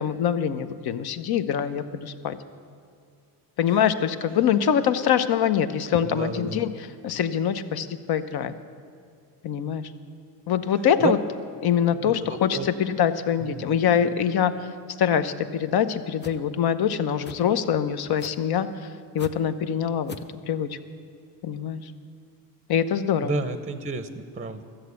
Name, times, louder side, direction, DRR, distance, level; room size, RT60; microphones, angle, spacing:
voice 1, 0.0-2.4 3.6-8.5 9.4-9.8 10.5-11.2 11.6-14.7 15.0-18.7 19.1-20.1 20.5-20.8 21.4-21.9 22.7-23.4, left 8 dB, 55° left, 11 dB, 0.9 m, -24 dB
voice 2, 6.1-6.6 11.0-11.1 12.0-12.7 13.4-13.8 23.2-24.6, right 3 dB, 15° right, 11 dB, 0.7 m, -31 dB
sound 1, 16.2-16.4 17.2-17.4 18.2-18.5 19.2-19.3 20.1-20.3, left 4 dB, 25° left, 0.8 m, -40 dB
13.5 x 7.7 x 8.2 m, 2.3 s
supercardioid pair, 75°, 47 cm